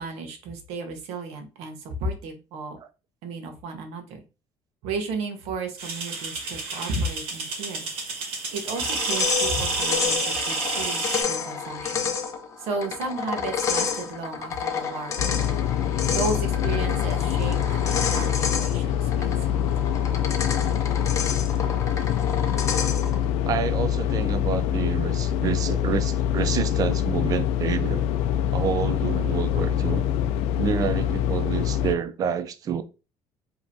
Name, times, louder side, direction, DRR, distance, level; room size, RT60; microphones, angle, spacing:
voice 1, 0.0-2.8 3.2-4.2 4.8-7.9 8.5-12.1 12.6-15.6 16.1-19.6, right 3 dB, 80° right, 1.0 m, -33 dB
sound 1, 5.8-11.2, right 3 dB, 65° right, 1.5 m, -29 dB
sound 2, 8.7-23.2, left 6 dB, 30° left, 0.7 m, -30 dB
sound 3, 15.2-32.0, left 10 dB, 85° left, 0.4 m, -25 dB
voice 2, 23.5-28.0 28.5-30.0 30.6-32.8, right 7 dB, 35° right, 0.5 m, -28 dB
5.2 x 2.9 x 2.7 m
cardioid pair, 160°, 11 cm